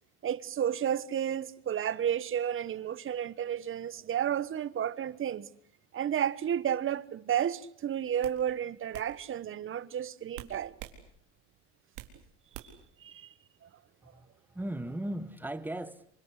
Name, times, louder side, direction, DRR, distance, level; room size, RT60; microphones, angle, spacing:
voice 1, 0.2-5.5 5.9-10.7 13.0-13.3 13.6-13.7, right 9 dB, 35° right, 1.3 m, -32 dB
sound 1, 7.4-7.6 8.2-8.4 8.9-9.1 10.3-11.0 11.4-12.2 12.5-12.9, right 14 dB, 80° right, 4.2 m, -45 dB
voice 2, 14.0-16.1, right 1 dB, 5° right, 1.6 m, -37 dB
28.0 x 24.5 x 8.3 m
cardioid pair, 125°, 36 cm